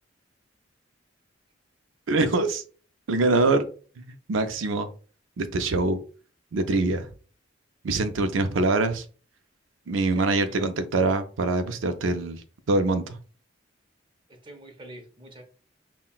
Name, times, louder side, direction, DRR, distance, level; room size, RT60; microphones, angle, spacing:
voice 1, 2.1-2.6 3.1-3.7 4.0-4.9 5.4-6.0 6.5-7.1 7.8-9.1 9.9-13.2, right 2 dB, 85° right, 8 dB, 0.5 m, -24 dB
voice 2, 10.1-10.7 14.3-15.4, right 1 dB, 25° right, 5 dB, 0.7 m, -44 dB
5.5 x 2.2 x 2.3 m, 0.38 s
head